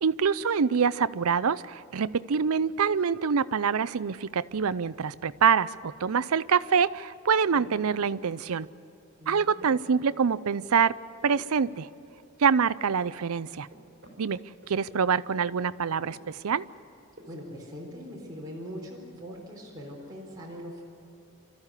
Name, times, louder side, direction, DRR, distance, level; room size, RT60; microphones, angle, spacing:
voice 1, 0.0-8.7 9.3-10.9 11.2-11.9 12.4-13.7 14.2-14.4 14.7-16.6, right 6 dB, 80° right, 16 dB, 0.5 m, -25 dB
voice 2, 7.5-8.0 9.2-9.8 17.3-20.8, equal, 15° right, -4 dB, 4.1 m, -42 dB
sound 1, 9.6-10.7 11.0-12.6 12.8-15.4 15.9-17.6, equal, 45° right, 5.0 m, -55 dB
27.0 x 14.0 x 9.8 m, 2.7 s
head